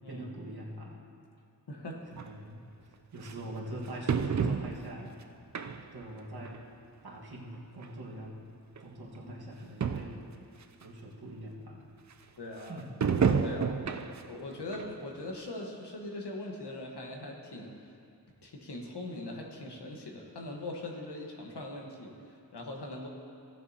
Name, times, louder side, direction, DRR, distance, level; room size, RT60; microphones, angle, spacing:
voice 1, 0.1-1.0 2.1-2.6 3.1-5.1 5.9-6.6 7.0-8.4 8.8-10.3 10.8-11.8 12.7-12.9 13.8-14.0, right 1 dB, 65° right, -3 dB, 1.7 m, -43 dB
voice 2, 1.7-2.0 9.2-9.3 12.4-12.8 13.4-13.9 14.3-17.9 18.4-23.1, left 1 dB, 80° left, 0 dB, 1.3 m, -41 dB
sound 1, 2.2-2.3 3.2-3.3 4.1-5.0 5.5-6.0 6.5-6.6 7.5-7.6 7.8-7.9 8.8-8.9 9.2-9.3 9.5-9.6 9.8-10.3 10.8-10.9 13.0-14.3 14.7-14.9 15.4-15.5, right 6 dB, 45° right, 0.5 m, -29 dB
17.0 x 7.1 x 2.8 m, 2.4 s
wide cardioid pair, 70°, 40 cm